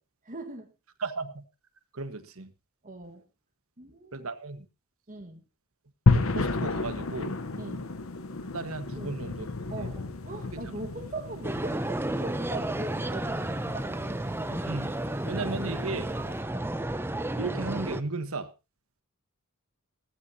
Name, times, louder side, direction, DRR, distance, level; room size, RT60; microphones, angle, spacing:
voice 1, 0.2-0.7 2.8-3.2 3.8-4.3 5.1-5.4 7.6-7.9 9.0-9.2 9.7-13.9 16.1-16.7, right 2 dB, 35° right, 4 dB, 1.7 m, -41 dB
voice 2, 1.0-1.4 1.9-2.5 4.1-4.7 6.1-7.3 8.5-9.5 9.8-9.9 10.5-10.7 14.6-14.9 15.2-16.1 17.4-18.5, right 3 dB, 70° right, 11 dB, 1.4 m, -35 dB
sound 1, 6.1-16.3, left 3 dB, 65° left, 1.0 m, -32 dB
sound 2, 11.4-18.0, right 1 dB, 10° right, 0.7 m, -32 dB
17.0 x 14.5 x 2.8 m, 0.28 s
head